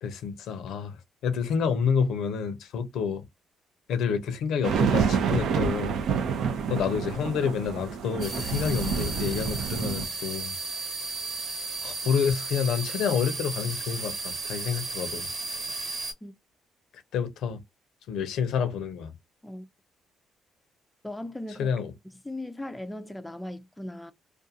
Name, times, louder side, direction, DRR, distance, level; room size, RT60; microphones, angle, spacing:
voice 1, 0.0-1.0 1.2-3.2 3.9-6.0 6.7-10.5 11.8-15.3 17.1-17.6 18.1-19.1 21.6-21.9, left 6 dB, 80° left, 0.5 m, -28 dB
sound 1, 4.6-10.0, right 6 dB, 80° right, 0.5 m, -28 dB
sound 2, 8.2-16.1, right 3 dB, 65° right, 1.1 m, -34 dB
voice 2, 21.0-21.7 22.2-24.1, left 1 dB, 10° left, 0.3 m, -38 dB
2.4 x 2.3 x 2.7 m
cardioid pair, 90°, 0 cm